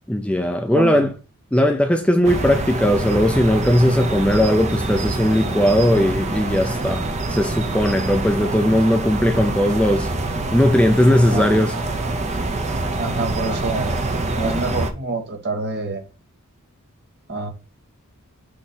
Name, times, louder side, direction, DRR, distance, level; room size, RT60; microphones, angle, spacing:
voice 1, 0.1-1.1 1.5-10.1 10.5-11.7, left 1 dB, 5° left, 0.5 m, -18 dB
voice 2, 0.7-1.1 11.3-11.7 12.9-14.0 14.4-16.0 17.3-17.5, right 3 dB, 50° right, 1.6 m, -27 dB
sound 1, 2.2-14.9, right 2 dB, 30° right, 0.8 m, -25 dB
6.5 x 3.1 x 5.5 m
head